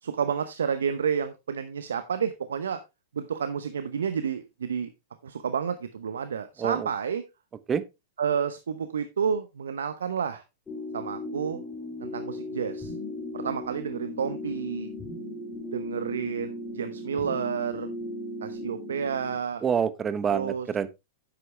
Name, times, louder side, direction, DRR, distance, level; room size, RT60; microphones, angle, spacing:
voice 1, 0.0-2.8 3.1-4.9 5.2-7.2 8.2-10.4 10.9-11.6 12.0-12.9 13.3-14.9 15.7-17.9 18.4-19.6 20.3-20.7, right 7 dB, 75° right, 0.9 m, -30 dB
sound 1, 10.7-19.4, left 1 dB, 15° left, 3.8 m, -37 dB
voice 2, 19.6-20.9, right 7 dB, 20° right, 1.0 m, -27 dB
10.5 x 7.8 x 3.3 m
hypercardioid pair, 100°, 0 cm